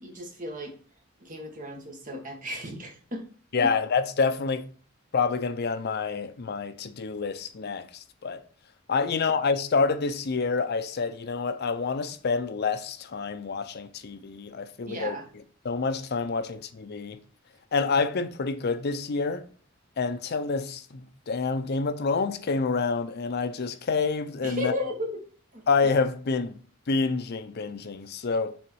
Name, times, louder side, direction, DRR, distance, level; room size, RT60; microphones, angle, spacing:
voice 1, 0.0-0.7 1.2-3.2 3.6-3.7 14.9-15.3 24.4-25.1 25.5-25.6, left 1 dB, 40° right, 1.7 m, -34 dB
voice 2, 3.5-4.6 5.1-8.4 8.9-15.2 15.6-17.2 17.7-19.5 20.0-24.7 25.7-26.6 26.9-28.6, left 4 dB, 50° left, 0.5 m, -27 dB
6.2 x 4.0 x 4.6 m
head